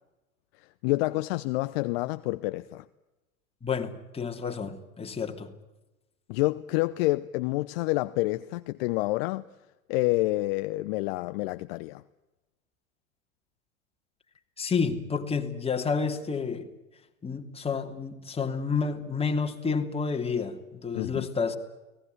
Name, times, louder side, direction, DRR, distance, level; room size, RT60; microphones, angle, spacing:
voice 1, 0.8-2.8 6.3-9.4 9.9-12.0 20.9-21.3, left 20 dB, 50° left, 0.9 m, -28 dB
voice 2, 3.6-5.5 14.6-16.7 17.2-21.6, left 5 dB, 15° left, 3.1 m, -30 dB
30.0 x 19.5 x 9.5 m
figure-of-eight pair, 90°, 39 cm